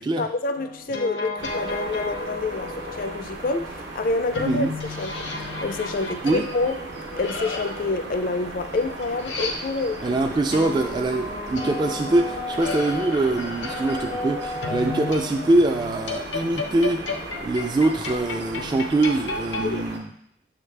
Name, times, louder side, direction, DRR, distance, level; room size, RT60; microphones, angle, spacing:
voice 1, 0.0-4.7 5.0-5.3 5.6-6.8 7.2-10.1 10.6-10.7 19.6-19.9, left 3 dB, 55° left, 9 dB, 0.4 m, -27 dB
sound 1, 0.6-3.1 4.3-10.0 10.5-19.7, left 2 dB, 90° left, 0.8 m, -33 dB
sound 2, 1.4-20.0, right 2 dB, 80° right, 1.0 m, -37 dB
voice 2, 10.0-17.1 17.4-20.1, right 2 dB, 25° right, 4 dB, 0.3 m, -23 dB
7.0 x 5.0 x 3.3 m, 0.70 s
head